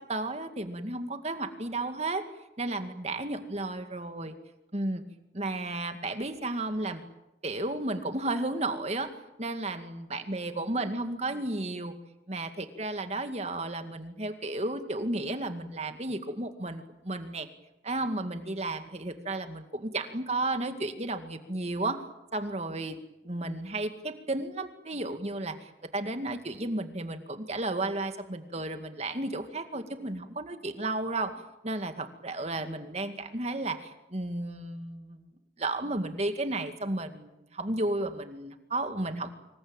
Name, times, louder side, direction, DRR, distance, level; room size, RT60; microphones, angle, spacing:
voice 1, 0.0-2.3 2.6-4.4 4.7-5.0 5.3-7.0 7.4-11.9 12.3-17.5 17.8-22.0 22.3-23.0 23.2-31.3 31.6-35.2 35.6-39.3, right 2 dB, 35° right, 8 dB, 2.1 m, -33 dB
26.0 x 22.5 x 8.9 m, 0.92 s
head